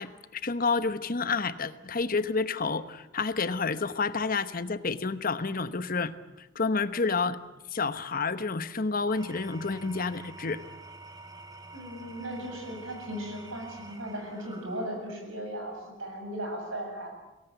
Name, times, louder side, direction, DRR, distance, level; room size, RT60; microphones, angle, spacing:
voice 1, 0.0-6.1 6.4-7.4 7.7-10.6, left 4 dB, 45° left, 12 dB, 1.0 m, -29 dB
Engine / Tools, 8.9-15.4, right 3 dB, 20° right, 2.2 m, -48 dB
voice 2, 11.7-17.1, right 1 dB, 85° right, 3 dB, 7.8 m, -37 dB
23.5 x 18.0 x 9.2 m, 1.0 s
head